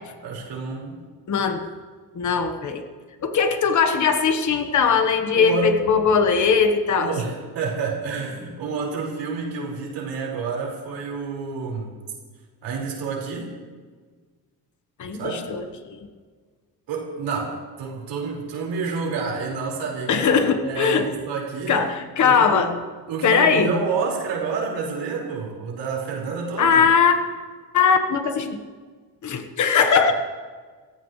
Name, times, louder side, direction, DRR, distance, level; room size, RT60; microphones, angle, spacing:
voice 1, 0.2-1.0 5.3-6.1 6.9-11.9 12.6-13.5 15.1-15.5 16.9-20.3 20.6-21.8 22.2-22.7 23.1-26.8, right 5 dB, 85° right, -2 dB, 5.1 m, -29 dB
voice 2, 1.3-1.6 2.1-2.8 3.2-7.1 15.0-16.1 20.1-21.1 21.7-22.7 23.2-23.7 26.6-27.2 27.7-28.6 29.2-30.1, left 6 dB, 45° left, 6 dB, 1.4 m, -20 dB
29.0 x 15.5 x 3.3 m, 1.5 s
cardioid pair, 160°, 41 cm